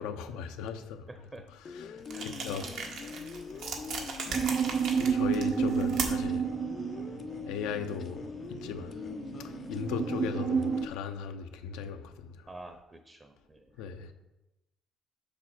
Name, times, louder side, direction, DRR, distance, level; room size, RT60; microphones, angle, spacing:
voice 1, 0.0-1.0 1.8-2.7 5.0-6.5 7.5-8.9 9.4-12.3 13.8-14.1, left 7 dB, 85° left, 0.7 m, -37 dB
voice 2, 1.1-1.5 2.1-2.5 2.7-3.0 3.5-3.6 12.5-13.8, right 2 dB, 25° right, 0.8 m, -49 dB
sound 1, 1.7-11.0, left 6 dB, 50° left, 0.5 m, -43 dB
sound 2, 2.1-6.4, right 4 dB, 75° right, 1.5 m, -38 dB
sound 3, 4.3-10.9, right 7 dB, 55° right, 0.4 m, -31 dB
7.0 x 6.1 x 4.5 m
supercardioid pair, 80°, 0 cm